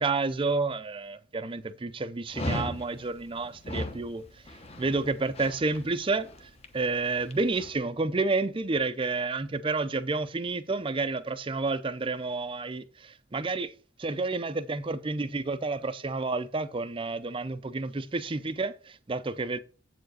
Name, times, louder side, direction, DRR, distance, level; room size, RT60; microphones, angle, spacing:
voice 1, 0.0-4.3 4.8-6.3 6.7-13.7 14.0-19.6, right 3 dB, 25° right, 0.5 m, -30 dB
Dog, 2.3-7.7, left 1 dB, 30° left, 1.0 m, -38 dB
8.0 x 4.7 x 6.3 m
head